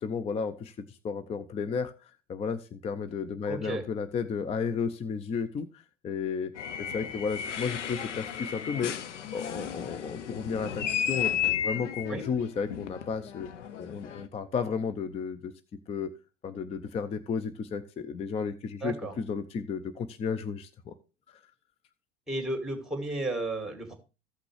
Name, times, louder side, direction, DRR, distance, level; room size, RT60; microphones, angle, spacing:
voice 1, 0.0-1.9 2.3-5.7 6.0-6.5 6.8-8.9 9.3-11.3 11.6-13.5 13.8-15.5 15.9-16.1 16.4-20.9, left 6 dB, 15° left, 12 dB, 0.5 m, -33 dB
voice 2, 3.5-3.8 12.1-12.3 18.8-19.2 22.3-24.0, right 2 dB, ahead, 5 dB, 2.4 m, -33 dB
sound 1, 6.6-14.3, left 9 dB, 75° left, 0.8 m, -34 dB
14.5 x 5.9 x 3.2 m, 0.30 s
figure-of-eight pair, 80°, 37 cm